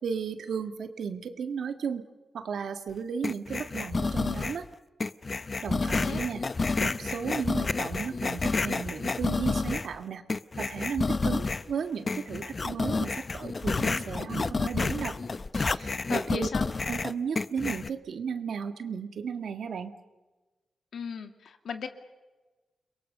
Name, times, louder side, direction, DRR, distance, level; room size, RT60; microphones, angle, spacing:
voice 1, 0.0-2.1 2.3-4.7 5.6-6.4 6.8-10.2 10.6-15.2 15.5-16.5 16.9-19.9, right 6 dB, 75° right, 8 dB, 1.8 m, -34 dB
sound 1, 3.2-4.6 5.0-10.0 10.3-11.7 12.1-17.9, left 3 dB, 35° left, 0.7 m, -30 dB
voice 2, 5.8-6.2 16.1-16.7 20.9-21.9, left 6 dB, 75° left, 7 dB, 2.3 m, -37 dB
30.0 x 22.0 x 6.7 m, 1.2 s
wide cardioid pair, 120°, 0 cm